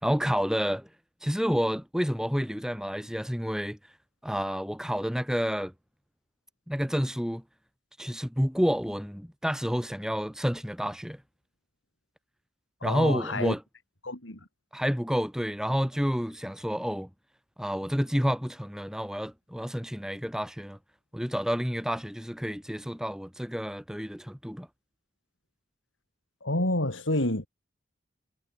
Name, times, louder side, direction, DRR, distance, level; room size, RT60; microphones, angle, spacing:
voice 1, 0.0-0.9 1.2-3.8 4.2-5.7 6.7-7.4 8.0-11.2 12.8-13.6 14.7-17.1 17.6-20.8 21.1-24.7, equal, 5° right, 5.5 m, -29 dB
voice 2, 12.8-13.5 14.0-14.5 26.4-27.5, left 1 dB, 85° left, 5.6 m, -28 dB
head